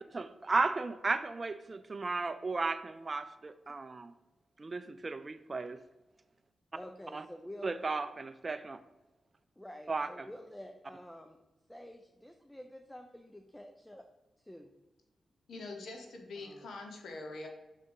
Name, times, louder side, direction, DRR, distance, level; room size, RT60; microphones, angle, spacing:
voice 1, 0.1-4.1 4.6-5.8 7.1-7.2 7.6-8.8 9.9-10.3, right 3 dB, 40° right, 10 dB, 0.4 m, -35 dB
voice 2, 6.8-7.7 9.6-11.4 11.7-14.0 14.5-14.7 16.4-16.7, left 1 dB, 10° left, 5 dB, 0.6 m, -49 dB
voice 3, 15.5-17.5, left 2 dB, 75° left, 3 dB, 1.1 m, -44 dB
6.5 x 3.6 x 5.3 m, 1.0 s
cardioid pair, 50°, 0 cm